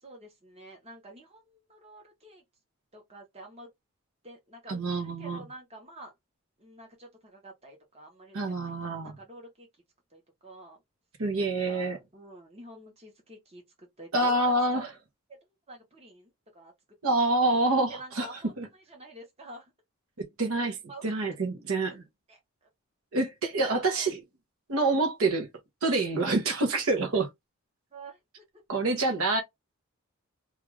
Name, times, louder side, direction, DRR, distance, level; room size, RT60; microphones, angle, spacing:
voice 1, 0.0-2.4 2.9-3.7 4.2-6.1 6.6-9.7 10.1-10.8 11.6-14.8 15.7-16.7 17.7-19.7 20.9-21.1 21.9-22.0 22.3-22.4 23.5-24.1 27.9-28.4 28.7-28.8, right 1 dB, 25° right, 0.9 m, -48 dB
voice 2, 4.7-5.4 8.3-9.1 11.2-12.0 14.1-14.9 17.0-18.3 18.6-18.7 20.2-20.8 21.0-22.0 23.1-24.2 24.7-25.5 25.8-27.3 28.7-29.4, right 2 dB, 70° right, 0.8 m, -27 dB
2.4 x 2.4 x 3.1 m
head